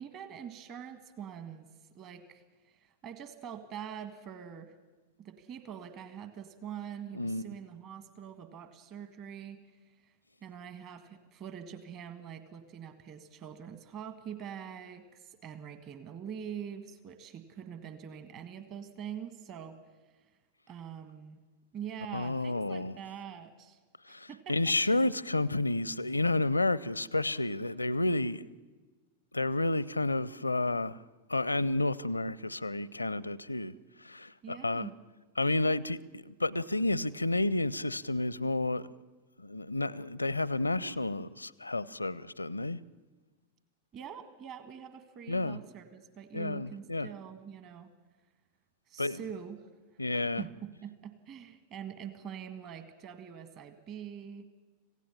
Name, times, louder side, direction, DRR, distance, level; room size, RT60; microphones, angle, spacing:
voice 1, 0.0-1.7 1.9-4.7 5.2-9.6 9.9-10.1 10.4-19.8 20.7-21.4 21.7-23.8 24.1-25.0 34.4-34.9 43.9-47.9 48.9-49.6 50.1-54.4, right 8 dB, 35° right, 1.7 m, -44 dB
voice 2, 7.1-7.5 22.1-23.0 24.1-28.6 29.3-31.0 31.3-34.9 35.4-38.9 39.4-42.8 45.3-45.6 46.3-47.1 49.0-49.2 50.0-50.4, left 2 dB, 85° left, 0.6 m, -31 dB
26.0 x 16.5 x 7.2 m
figure-of-eight pair, 90°, 0 cm